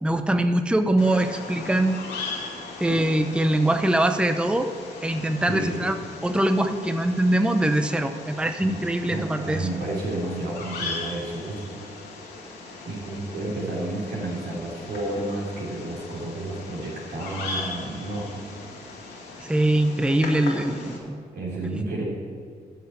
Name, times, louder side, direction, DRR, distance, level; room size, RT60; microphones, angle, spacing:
voice 1, 0.0-2.0 2.8-4.7 5.0-5.9 6.2-9.7 19.4-21.2 21.7-21.8, right 1 dB, 5° right, 8 dB, 0.7 m, -23 dB
Bird vocalization bird call bird song, 1.0-21.0, left 3 dB, 85° left, 2.2 m, -38 dB
voice 2, 5.5-5.8 8.6-11.7 12.8-18.4 21.3-22.0, right 2 dB, 80° right, -3 dB, 3.2 m, -31 dB
9.3 x 6.4 x 8.5 m, 2.1 s
supercardioid pair, 55°, 18 cm